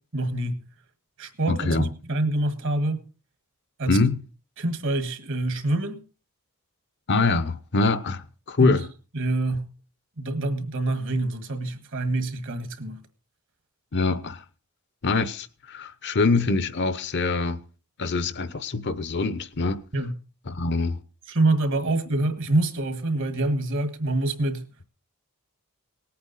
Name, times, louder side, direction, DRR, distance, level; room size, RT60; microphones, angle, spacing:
voice 1, 0.1-0.6 1.2-3.0 3.8-4.0 4.6-6.0 8.6-8.8 9.1-9.7 10.2-13.0 19.9-20.1 21.3-24.7, right 2 dB, 60° right, 1.6 m, -26 dB
voice 2, 1.5-1.9 3.9-4.2 7.1-8.9 13.9-14.4 15.0-17.6 18.0-19.8 20.5-21.0, left 3 dB, 50° left, 0.8 m, -24 dB
18.5 x 8.7 x 4.1 m
head